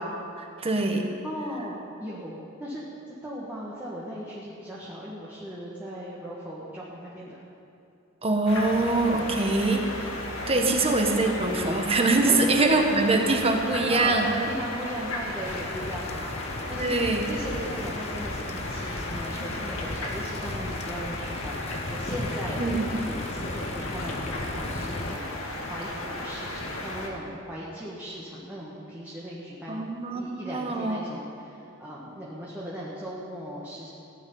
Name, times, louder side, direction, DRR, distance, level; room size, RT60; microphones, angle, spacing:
voice 1, 0.4-1.1 8.2-10.1 10.5-14.3 16.8-17.3 22.6-22.9 29.7-31.0, right 2 dB, 30° right, 2 dB, 1.4 m, -24 dB
voice 2, 1.2-7.4 10.5-10.9 12.2-12.4 13.9-16.9 17.3-21.6 21.9-33.9, equal, 10° right, -7 dB, 1.7 m, -38 dB
sound 1, 8.5-27.1, left 1 dB, 70° left, 2.1 m, -35 dB
sound 2, 15.5-25.2, left 2 dB, 30° left, 0.6 m, -36 dB
16.0 x 6.6 x 9.5 m, 2.6 s
head